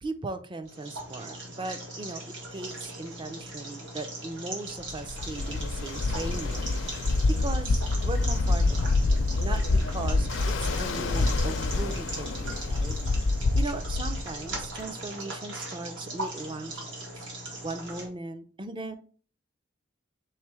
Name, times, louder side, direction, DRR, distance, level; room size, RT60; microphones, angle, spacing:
voice 1, 0.0-6.7 7.3-9.0 9.4-13.0 13.5-16.8 17.2-17.3 17.6-19.0, right 2 dB, 25° right, 9 dB, 0.4 m, -38 dB
sound 1, 0.6-18.1, right 2 dB, 70° right, 1.5 m, -39 dB
Ocean, 4.9-14.8, left 3 dB, 85° left, 0.5 m, -27 dB
3.6 x 3.2 x 4.6 m, 0.42 s
head